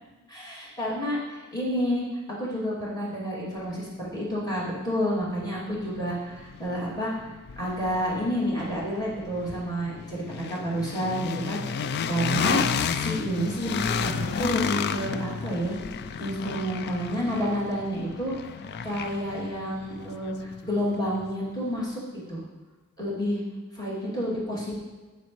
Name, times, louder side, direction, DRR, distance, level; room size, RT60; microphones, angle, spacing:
voice 1, 0.3-2.0 2.4-7.1 7.6-10.2 10.5-12.6 12.9-15.8 16.2-18.3 18.8-22.0 22.3-22.4 23.0-23.4 23.7-24.8, equal, 20° left, -7 dB, 2.6 m, -29 dB
sound 1, 4.8-4.9 5.4-21.3, left 6 dB, 50° left, 0.3 m, -32 dB
9.3 x 7.2 x 3.1 m, 1.3 s
head